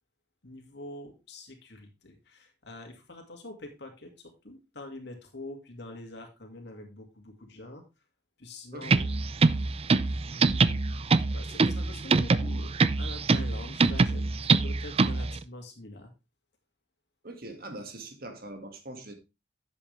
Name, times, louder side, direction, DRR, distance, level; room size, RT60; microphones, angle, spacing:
voice 1, 0.4-7.8 8.4-9.1 10.2-10.8 11.3-16.1, left 2 dB, 65° left, 2.3 m, -45 dB
voice 2, 8.7-9.1 17.2-19.1, right 2 dB, 55° right, 2.1 m, -42 dB
sound 1, 8.8-15.4, right 3 dB, 35° right, 0.5 m, -25 dB
10.5 x 7.6 x 3.4 m
head